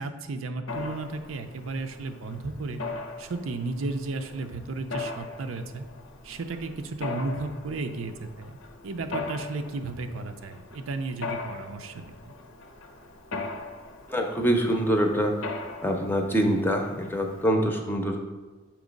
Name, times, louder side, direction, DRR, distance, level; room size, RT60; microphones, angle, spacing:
voice 1, 0.0-2.8 3.2-5.8 6.2-8.6 8.8-12.1, right 3 dB, 85° right, 7 dB, 0.5 m, -34 dB
Mechanisms, 0.7-17.5, left 3 dB, 85° left, 0.8 m, -40 dB
voice 2, 14.1-15.3 15.8-18.2, equal, 10° left, 3 dB, 0.6 m, -25 dB
7.2 x 3.0 x 5.1 m, 1.2 s
head